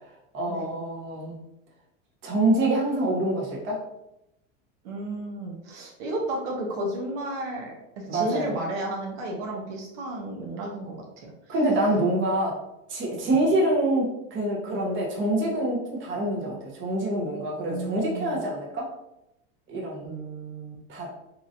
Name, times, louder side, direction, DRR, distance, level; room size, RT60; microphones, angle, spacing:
voice 1, 0.3-1.4 2.2-3.8 8.1-8.5 11.5-12.6 12.9-14.0 14.3-18.9 19.7-20.1 20.9-21.1, right 1 dB, 35° right, -2 dB, 1.0 m, -26 dB
voice 2, 4.8-11.3 13.2-13.4 17.7-18.4 20.0-20.8, right 1 dB, 65° right, -1 dB, 0.8 m, -33 dB
2.9 x 2.6 x 2.6 m, 0.87 s
supercardioid pair, 115°, 36 cm